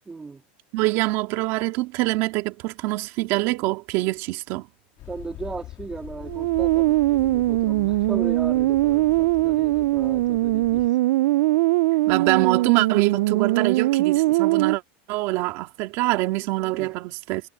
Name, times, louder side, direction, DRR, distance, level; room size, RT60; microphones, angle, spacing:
voice 1, 0.1-0.4 5.1-10.9 16.6-17.0, right 4 dB, 10° right, 3.2 m, -36 dB
voice 2, 0.7-4.6 12.1-14.8 15.1-17.4, right 20 dB, 50° right, 2.2 m, -24 dB
sound 1, 5.0-10.9, left 15 dB, 40° left, 3.2 m, -42 dB
sound 2, 6.2-14.8, right 18 dB, 75° right, 0.3 m, -21 dB
supercardioid pair, 150°, 6 cm